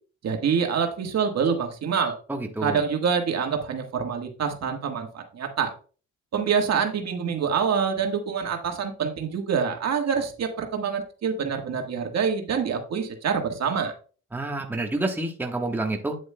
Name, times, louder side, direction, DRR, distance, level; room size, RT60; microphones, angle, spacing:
voice 1, 0.2-2.2 2.6-5.7 6.3-13.9, right 6 dB, 60° right, 4 dB, 1.5 m, -26 dB
voice 2, 2.3-2.8 14.3-16.2, right 2 dB, 5° right, 2 dB, 1.3 m, -28 dB
8.8 x 7.8 x 2.2 m, 0.39 s
cardioid pair, 90°, 30 cm